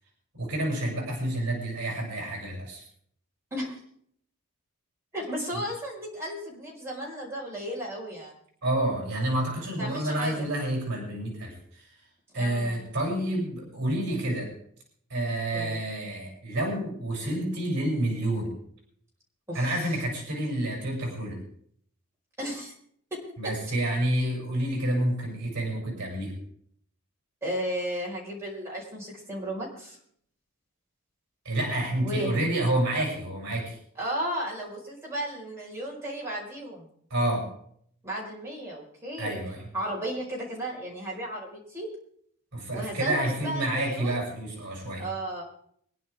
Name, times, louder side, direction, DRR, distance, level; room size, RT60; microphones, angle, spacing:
voice 1, 0.4-2.8 8.6-11.9 12.3-14.5 15.1-18.6 19.5-21.4 23.4-26.3 31.4-33.8 37.1-37.5 39.2-39.6 42.5-45.1, right 1 dB, 55° right, 1 dB, 7.3 m, -29 dB
voice 2, 5.1-8.3 9.8-10.5 12.3-12.8 15.5-15.8 19.5-20.0 22.4-22.7 23.1-23.2 27.4-30.0 32.0-32.5 34.0-36.9 38.0-39.4 39.7-41.9 42.7-44.3 45.0-45.4, equal, 10° right, -5 dB, 5.1 m, -34 dB
25.0 x 10.5 x 3.6 m, 0.65 s
head